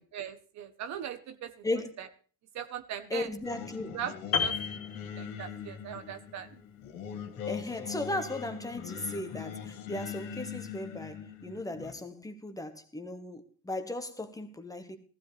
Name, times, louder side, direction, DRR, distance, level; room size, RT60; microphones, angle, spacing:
voice 1, 0.0-1.6 2.0-2.1 2.5-3.3 3.9-4.6 5.2-6.5, right 9 dB, 50° right, 1.1 m, -39 dB
voice 2, 1.6-1.9 3.1-4.0 7.5-15.0, left 2 dB, 10° left, 1.4 m, -36 dB
Singing, 3.4-11.9, left 8 dB, 75° left, 2.0 m, -41 dB
Piano, 4.3-5.8 6.0-6.3, left 7 dB, 40° left, 2.6 m, -32 dB
15.5 x 14.0 x 3.3 m
supercardioid pair, 95°, 35 cm